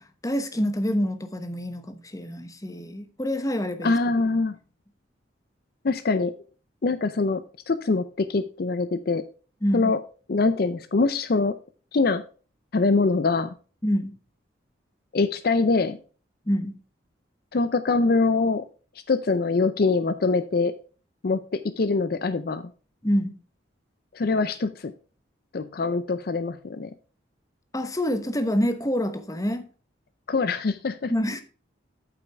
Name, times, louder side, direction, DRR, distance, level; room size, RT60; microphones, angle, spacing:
voice 1, 0.0-3.9 9.6-9.9 13.8-14.2 16.5-16.8 23.0-23.4 27.7-29.7 31.1-31.4, equal, 20° left, 1.0 m, -27 dB
voice 2, 3.8-4.6 5.8-6.3 6.8-9.2 9.7-10.0 10.3-11.6 11.9-12.2 12.7-13.5 15.1-16.0 17.5-18.7 19.1-20.7 21.2-22.7 24.1-24.9 25.5-26.9 30.3-31.1, left 3 dB, 50° left, 0.5 m, -24 dB
8.4 x 8.4 x 3.4 m
head